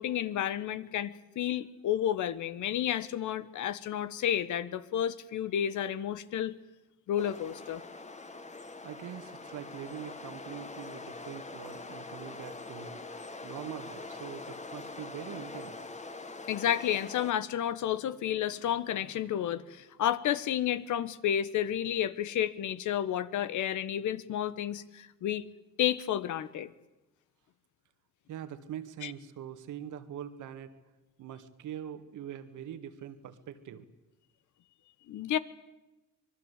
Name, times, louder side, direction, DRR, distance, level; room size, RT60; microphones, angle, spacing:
voice 1, 0.0-6.5 7.1-7.8 16.5-25.4 25.8-26.7 29.0-29.1 35.1-35.4, left 10 dB, 75° left, 14 dB, 1.3 m, -31 dB
sound 1, 7.2-17.3, left 3 dB, 25° left, 1.6 m, -44 dB
voice 2, 8.8-15.9 28.3-30.7 31.2-33.9, right 9 dB, 80° right, 9 dB, 2.0 m, -43 dB
26.0 x 20.5 x 8.3 m, 1.0 s
cardioid pair, 90°, 30 cm